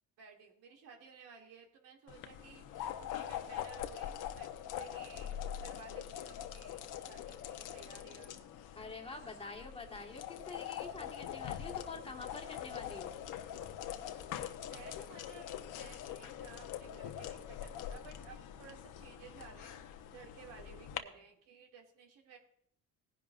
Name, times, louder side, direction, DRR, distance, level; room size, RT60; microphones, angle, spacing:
voice 1, 0.2-8.4 14.7-15.5 15.7-22.4, right 6 dB, 80° right, 0 dB, 2.5 m, -56 dB
sound 1, 2.1-21.0, left 10 dB, 75° left, 0.9 m, -44 dB
voice 2, 8.7-13.1, left 3 dB, 15° left, 2 dB, 1.6 m, -47 dB
19.0 x 10.5 x 2.5 m, 0.68 s
cardioid pair, 125°, 32 cm